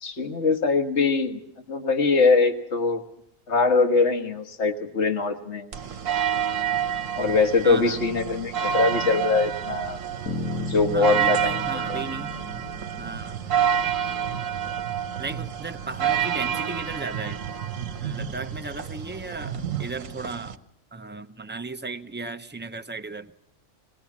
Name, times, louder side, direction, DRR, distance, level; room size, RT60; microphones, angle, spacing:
voice 1, 0.0-1.4 1.7-3.0 3.5-5.7 7.2-10.0 10.6-11.5 11.9-12.0, left 4 dB, 55° left, 7 dB, 1.8 m, -22 dB
sound 1, 5.7-20.6, right 8 dB, 70° right, 1.3 m, -28 dB
voice 2, 7.6-8.1 10.9-12.3 13.0-13.4 15.2-17.5 18.0-20.6 20.9-23.3, right 3 dB, 10° right, 7 dB, 0.5 m, -35 dB
sound 2, 10.3-14.6, left 2 dB, 90° left, 2.1 m, -35 dB
21.0 x 18.5 x 7.3 m, 0.80 s
omnidirectional pair, 1.5 m